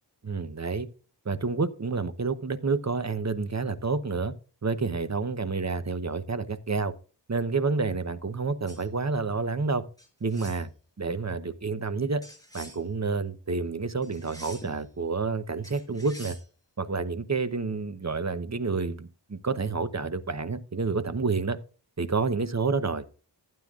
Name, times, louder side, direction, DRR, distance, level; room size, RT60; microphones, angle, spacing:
voice 1, 0.2-0.9 1.2-4.3 4.6-6.9 7.3-9.8 10.2-10.7 11.0-12.2 12.5-16.4 16.8-21.6 22.0-23.1, right 4 dB, 35° right, 0.9 m, -29 dB
sound 1, 8.7-8.8 10.0-10.6 12.2-12.8 14.0-14.8 15.6-16.4, equal, 10° left, 5.9 m, -46 dB
15.5 x 9.0 x 2.5 m
wide cardioid pair, 55°, 45 cm